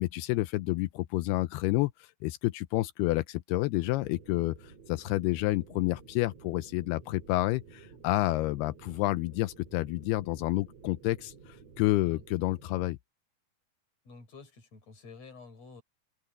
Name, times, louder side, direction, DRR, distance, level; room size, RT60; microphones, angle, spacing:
voice 1, 0.0-13.0, left 19 dB, 85° left, 2.6 m, -29 dB
sound 1, 3.7-12.9, right 5 dB, 45° right, 3.3 m, -53 dB
voice 2, 14.0-15.8, left 4 dB, 40° left, 5.7 m, -50 dB
open air
omnidirectional pair, 4.6 m